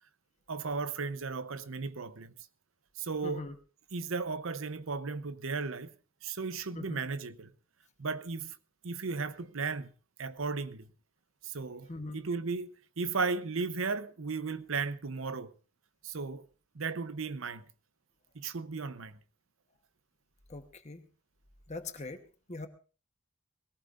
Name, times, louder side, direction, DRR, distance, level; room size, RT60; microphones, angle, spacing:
voice 1, 0.5-2.3 3.0-3.5 3.9-5.9 6.2-7.5 8.0-8.6 8.8-9.9 10.2-10.9 11.4-15.5 16.0-16.5 16.7-17.6 18.3-19.2, right 4 dB, 75° right, 0.8 m, -35 dB
voice 2, 3.2-3.5 6.8-7.0 11.9-12.2 20.5-21.0 21.7-22.2 22.5-22.7, left 2 dB, 35° left, 1.2 m, -41 dB
21.5 x 18.0 x 2.6 m
head